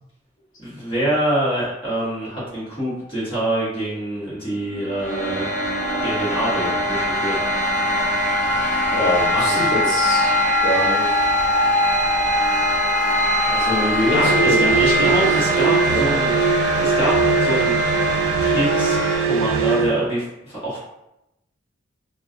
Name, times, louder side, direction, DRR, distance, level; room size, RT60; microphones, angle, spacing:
voice 1, 0.6-5.5 6.0-7.4 8.9-9.9 14.1-16.5 16.8-17.2 17.4-17.8 18.4-20.8, right 1 dB, 25° left, -9 dB, 1.1 m, -25 dB
sound 1, 4.6-19.2, equal, 45° left, 0.7 m, -21 dB
voice 2, 8.9-10.3 10.6-11.3 13.5-15.2 15.5-16.1, left 1 dB, 80° left, -5 dB, 0.8 m, -25 dB
sound 2, 14.1-20.0, right 6 dB, 85° right, 0.3 m, -21 dB
2.4 x 2.2 x 2.4 m, 0.88 s
head